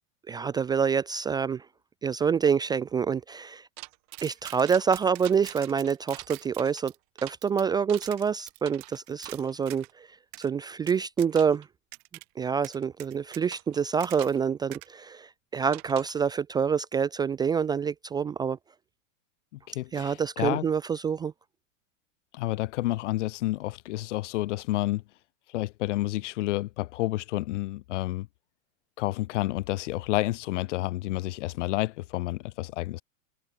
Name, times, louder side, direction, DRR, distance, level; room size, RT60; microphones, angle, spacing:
voice 1, 0.3-1.7 2.0-3.7 4.2-6.9 7.2-10.1 10.4-11.7 12.4-18.6 19.9-21.3, right 6 dB, 10° right, 0.5 m, -27 dB
sound 1, 3.8-9.9 10.3-10.5 10.9-11.6 11.9-12.2 12.6-14.4 14.7-14.9 15.7-16.2, right 29 dB, 45° right, 4.6 m, -44 dB
voice 2, 19.5-20.6 22.3-25.0 25.5-28.3 29.0-33.0, left 17 dB, 65° left, 1.5 m, -30 dB
hypercardioid pair, 135°, 39 cm